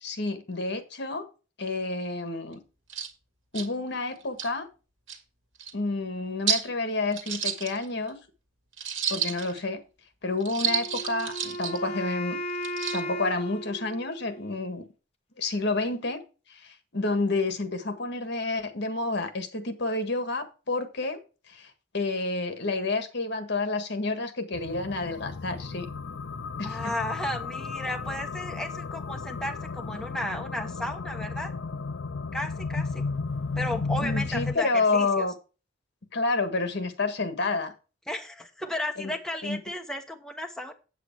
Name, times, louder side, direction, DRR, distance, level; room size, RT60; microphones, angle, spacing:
voice 1, 0.0-1.3 1.6-2.6 3.5-4.7 5.7-8.2 9.1-9.8 10.2-12.4 12.9-14.9 15.4-16.2 16.5-21.2 21.5-25.9 26.6-26.9 34.0-35.3 36.1-37.7 39.0-39.1 39.4-39.6, left 3 dB, 60° left, 9 dB, 1.6 m, -29 dB
sound 1, 2.5-2.6 2.9-3.1 3.5-3.7 4.2-4.5 5.1-5.2 5.6-5.7 6.5-6.7 7.1-8.1 8.8-9.6 10.4-11.8 12.5-13.0, right 8 dB, 75° right, 2.0 m, -30 dB
Wind instrument woodwind instrument, 10.7-14.7, equal, 30° left, 1.2 m, -36 dB
sound 2, 24.5-34.5, left 4 dB, 75° left, 0.6 m, -34 dB
voice 2, 26.6-31.5 32.3-33.0 33.6-35.3 38.1-40.7, left 1 dB, 5° left, 3 dB, 1.0 m, -34 dB
8.3 x 8.2 x 4.6 m, 0.33 s
head